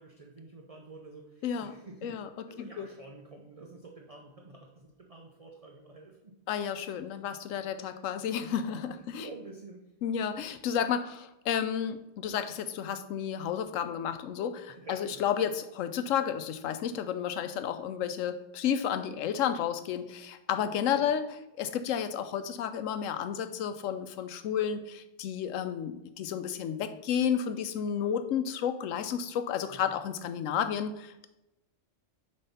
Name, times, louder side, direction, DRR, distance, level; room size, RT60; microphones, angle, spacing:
voice 1, 0.0-2.2 2.5-6.4 6.8-7.2 7.8-8.0 9.2-9.9 14.7-15.3 20.8-21.1 29.7-30.0, right 3 dB, 35° right, 1 dB, 0.6 m, -49 dB
voice 2, 1.4-1.8 2.0-2.3 2.6-2.9 6.5-9.3 10.0-21.3 21.6-31.3, left 8 dB, 90° left, 10 dB, 1.0 m, -32 dB
6.7 x 3.3 x 5.6 m, 0.93 s
omnidirectional pair, 1.3 m